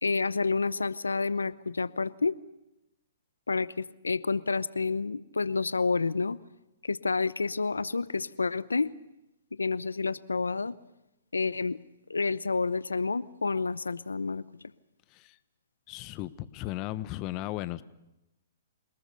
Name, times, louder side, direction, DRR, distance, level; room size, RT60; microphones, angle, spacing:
voice 1, 0.0-2.4 3.5-6.4 6.8-8.9 9.6-10.7 11.3-11.8 12.1-14.5, left 4 dB, 90° left, 18 dB, 0.8 m, -29 dB
voice 2, 15.9-17.8, left 16 dB, 35° left, 15 dB, 1.0 m, -36 dB
27.5 x 19.5 x 6.8 m, 0.95 s
hypercardioid pair, 120°, 0 cm